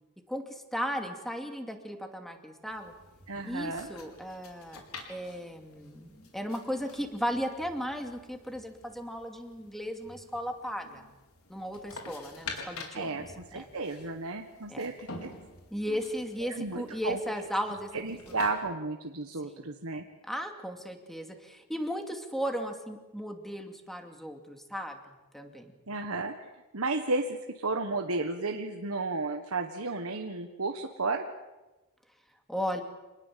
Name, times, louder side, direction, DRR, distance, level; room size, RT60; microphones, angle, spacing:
voice 1, 0.3-2.9 3.4-4.8 5.1-11.0 11.5-13.3 13.5-13.6 14.7-14.9 15.7-17.9 18.3-18.4 19.4-19.7 20.2-25.0 25.3-25.7 32.5-32.8, equal, ahead, 4 dB, 2.5 m, -36 dB
sound 1, 2.7-18.5, left 3 dB, 80° left, 4.5 m, -48 dB
voice 2, 3.3-3.9 12.9-15.3 16.5-17.2 17.9-20.0 25.9-26.3 26.7-31.3, right 3 dB, 75° right, 4 dB, 1.6 m, -33 dB
27.0 x 20.0 x 7.6 m, 1.1 s
head